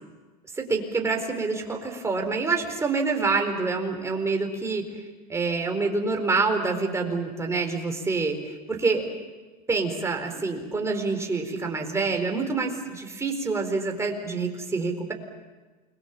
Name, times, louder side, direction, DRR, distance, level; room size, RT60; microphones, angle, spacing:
voice 1, 0.5-5.0 5.3-9.1 9.7-15.1, right 4 dB, 15° right, 3 dB, 4.5 m, -27 dB
29.0 x 22.5 x 7.6 m, 1.3 s
supercardioid pair, 120°, 20 cm